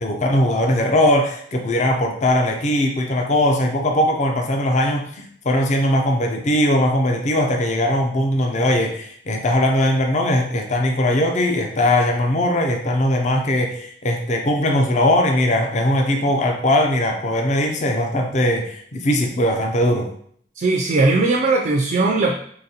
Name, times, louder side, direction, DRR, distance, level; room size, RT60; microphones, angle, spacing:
voice 1, 0.0-20.1, left 1 dB, 40° left, 3 dB, 0.5 m, -20 dB
voice 2, 20.6-22.3, right 3 dB, 45° right, 1 dB, 0.3 m, -18 dB
3.9 x 2.9 x 2.8 m, 0.63 s
head